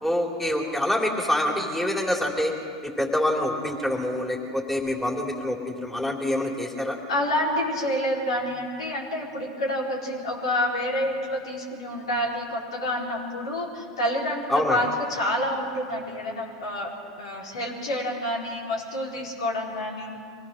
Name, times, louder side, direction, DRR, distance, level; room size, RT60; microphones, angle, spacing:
voice 1, 0.0-2.5 2.8-7.0 14.5-14.8, left 1 dB, 5° left, -1 dB, 3.3 m, -26 dB
voice 2, 7.1-20.2, left 1 dB, 80° left, -3 dB, 4.5 m, -28 dB
24.5 x 17.5 x 6.4 m, 2.5 s
hypercardioid pair, 90°, 3 cm